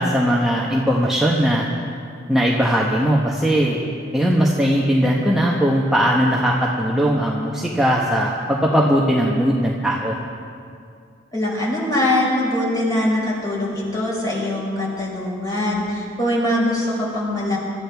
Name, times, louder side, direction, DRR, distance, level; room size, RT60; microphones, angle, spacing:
voice 1, 0.0-1.7 2.3-3.8 4.1-10.2, equal, ahead, -4 dB, 1.1 m, -19 dB
voice 2, 11.3-17.6, left 1 dB, 20° left, -5 dB, 4.9 m, -22 dB
25.5 x 13.5 x 3.5 m, 2.3 s
head